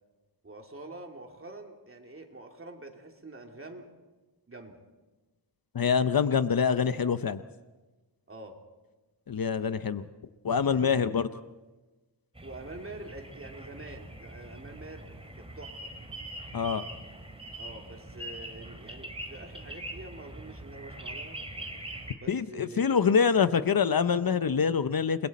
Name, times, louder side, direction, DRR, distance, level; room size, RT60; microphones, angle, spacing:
voice 1, 0.4-3.9 4.5-4.8 8.3-8.6 10.6-11.2 12.4-15.9 17.6-21.4 22.1-23.7, right 2 dB, 30° right, 2 dB, 2.7 m, -46 dB
voice 2, 5.7-7.4 9.3-10.0 10.4-11.3 16.5-16.8 22.3-25.3, left 6 dB, 55° left, 12 dB, 0.7 m, -25 dB
sound 1, 12.4-22.1, right 1 dB, 15° right, 2.5 m, -43 dB
29.0 x 21.0 x 4.2 m, 1.2 s
wide cardioid pair, 100°, 43 cm